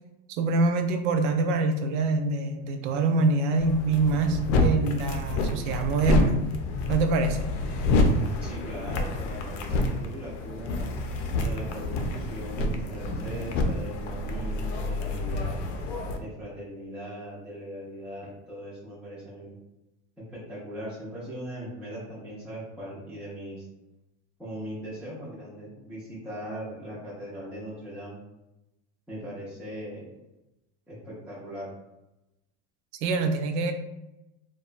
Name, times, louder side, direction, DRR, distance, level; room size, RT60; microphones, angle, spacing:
voice 1, 0.4-6.4 6.9-7.5 33.0-33.7, right 3 dB, 85° right, 6 dB, 0.5 m, -25 dB
sound 1, 3.6-16.2, left 2 dB, 85° left, 0.6 m, -28 dB
voice 2, 8.4-10.9 11.4-15.6 16.2-19.6 20.3-23.7 24.4-28.2 29.1-30.1 30.9-31.7, equal, 5° right, -10 dB, 0.4 m, -39 dB
2.9 x 2.2 x 2.4 m, 0.95 s
cardioid pair, 155°, 36 cm